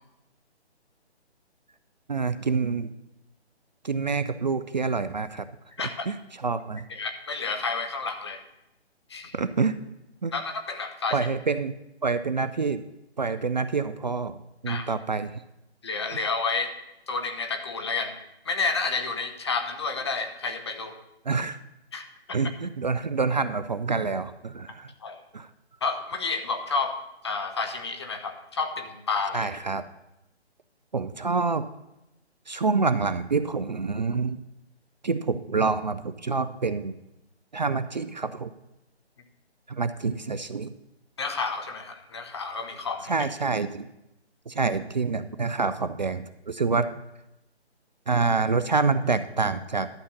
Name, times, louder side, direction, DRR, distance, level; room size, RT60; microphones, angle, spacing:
voice 1, 2.1-2.9 3.8-5.4 6.1-6.2 6.4-6.9 9.3-9.7 10.2-10.3 11.1-11.7 12.0-12.8 13.2-14.4 14.6-15.3 21.3-21.6 22.3-24.9 25.3-25.5 29.3-29.8 30.9-31.6 32.5-34.4 35.0-36.9 37.5-38.5 39.7-40.7 43.1-43.9 44.5-46.9 48.1-49.9, right 4 dB, 40° right, 12 dB, 0.5 m, -27 dB
voice 2, 6.9-8.4 9.1-9.3 10.3-11.2 14.7-14.9 15.8-16.7 17.1-18.2 18.4-21.0 21.9-22.4 25.0-25.2 25.8-27.0 27.2-29.5 41.2-43.1, left 4 dB, 25° left, 6 dB, 0.7 m, -30 dB
11.5 x 7.1 x 5.3 m, 0.89 s
figure-of-eight pair, 150°, 34 cm